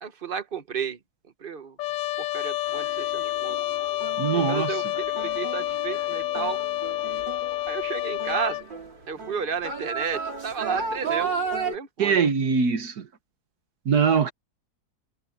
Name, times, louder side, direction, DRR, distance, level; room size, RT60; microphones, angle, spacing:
voice 1, 0.0-1.0 1.4-1.8 2.2-3.6 4.3-6.6 7.7-8.7 9.1-12.2, right 6 dB, 40° right, 0.8 m, -32 dB
Trumpet, 1.8-8.7, left 16 dB, 85° left, 1.3 m, -29 dB
sound 1, 2.7-11.8, right 5 dB, 85° right, 4.7 m, -34 dB
voice 2, 4.2-4.7 12.0-13.1 13.8-14.3, right 6 dB, 60° right, 1.7 m, -22 dB
omnidirectional pair, 1.9 m